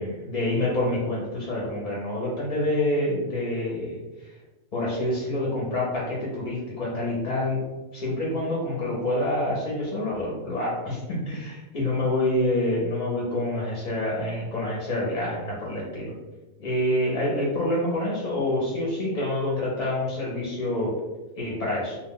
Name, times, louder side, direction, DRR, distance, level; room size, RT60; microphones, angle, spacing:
voice 1, 0.0-4.3 4.7-7.6 7.9-16.1 16.6-20.9 21.4-22.0, left 1 dB, 45° left, -4 dB, 0.6 m, -27 dB
2.3 x 2.2 x 3.5 m, 1.1 s
omnidirectional pair, 1.3 m